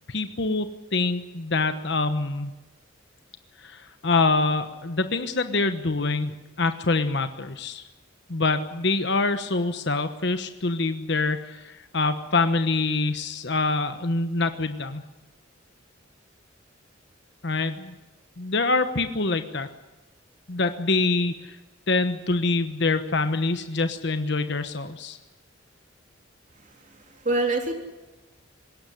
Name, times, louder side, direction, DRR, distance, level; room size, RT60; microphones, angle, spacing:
voice 1, 0.1-2.5 3.6-7.9 8.3-15.0 17.4-17.9 18.4-19.7 20.5-21.6 21.9-25.2, left 3 dB, 60° left, 9 dB, 1.2 m, -25 dB
voice 2, 26.8-27.7, right 2 dB, 40° right, 3 dB, 3.3 m, -26 dB
20.5 x 17.0 x 9.9 m, 1.1 s
head